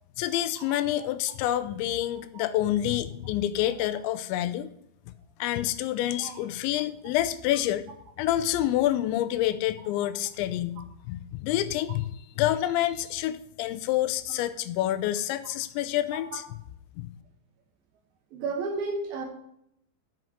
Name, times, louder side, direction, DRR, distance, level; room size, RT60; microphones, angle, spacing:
voice 1, 0.2-4.7 5.4-7.9 8.2-16.4 17.0-17.1, left 13 dB, 85° left, 13 dB, 2.9 m, -28 dB
voice 2, 18.3-19.3, right 3 dB, 70° right, 4 dB, 2.5 m, -32 dB
7.6 x 6.3 x 7.9 m, 0.72 s
omnidirectional pair, 5.2 m